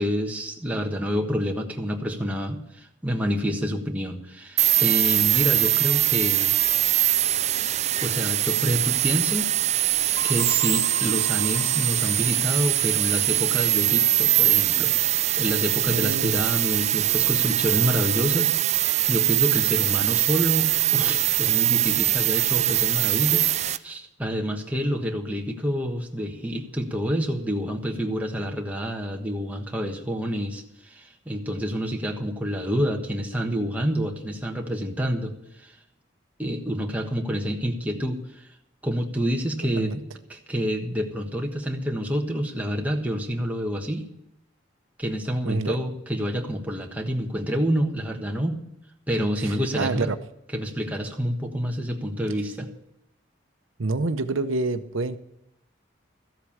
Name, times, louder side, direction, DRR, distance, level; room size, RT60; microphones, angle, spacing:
voice 1, 0.0-6.5 8.0-9.4 10.2-14.9 15.4-35.7 36.4-38.4 38.8-40.0 40.3-44.0 45.0-48.6 49.1-50.1 50.5-52.7, equal, 10° right, 1.3 m, -28 dB
sound 1, 4.6-23.8, right 13 dB, 35° right, 0.4 m, -22 dB
sound 2, 10.2-12.8, right 1 dB, 25° left, 1.0 m, -40 dB
voice 2, 15.9-16.4 39.8-40.0 45.4-45.8 49.4-50.2 53.8-55.2, right 3 dB, 85° right, 0.8 m, -27 dB
14.0 x 8.1 x 7.2 m
head